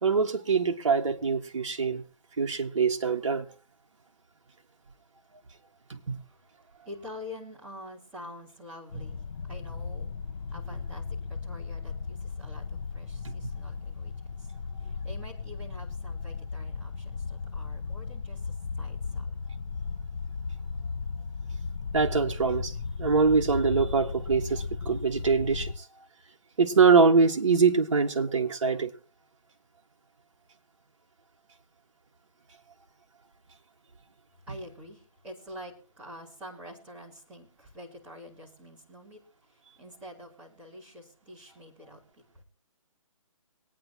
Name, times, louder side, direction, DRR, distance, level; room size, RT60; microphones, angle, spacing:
voice 1, 0.0-2.0 2.4-3.5 5.9-6.2 13.2-13.3 21.9-25.8 26.6-28.9, right 4 dB, 60° right, 1.8 m, -24 dB
voice 2, 6.8-10.1 10.5-14.5 14.8-19.4 34.5-39.2 39.7-42.4, left 1 dB, 5° right, 3.2 m, -46 dB
sound 1, 8.9-25.7, left 5 dB, 50° left, 1.1 m, -36 dB
24.0 x 9.6 x 2.9 m
hypercardioid pair, 170°, 18 cm